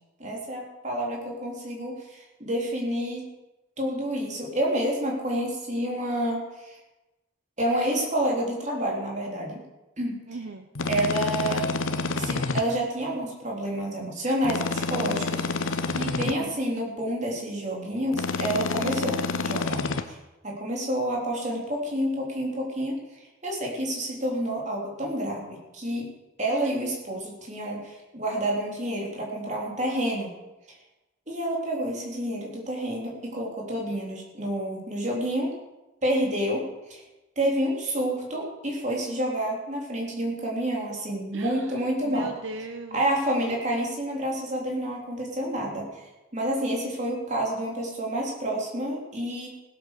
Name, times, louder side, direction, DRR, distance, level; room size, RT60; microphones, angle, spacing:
voice 1, 0.2-3.3 3.8-6.8 7.6-9.6 10.0-10.2 10.9-11.7 12.2-20.2 20.4-26.1 26.4-30.3 30.7-30.8 31.3-35.5 36.0-36.6 36.9-37.0 37.4-42.3 42.9-45.9 46.3-49.5, right 1 dB, 35° right, -2 dB, 3.5 m, -29 dB
voice 2, 10.3-10.7 16.2-16.6 41.3-43.0 45.5-45.6, right 2 dB, 75° right, 7 dB, 0.9 m, -39 dB
sound 1, 10.7-12.6 14.4-16.3 18.1-20.0, left 3 dB, 85° left, 0.9 m, -28 dB
16.5 x 8.2 x 6.7 m, 1.0 s
head